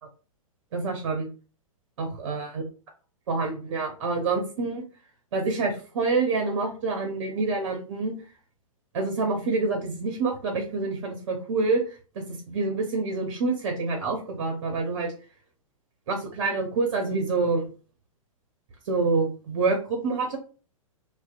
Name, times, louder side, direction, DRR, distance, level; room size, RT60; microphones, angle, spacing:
voice 1, 0.7-1.3 2.0-2.5 3.3-4.8 5.3-8.1 8.9-11.8 12.2-15.1 16.1-17.7 18.9-20.4, right 3 dB, 50° right, 3 dB, 0.6 m, -27 dB
2.6 x 2.1 x 2.4 m, 0.36 s
figure-of-eight pair, 110°, 18 cm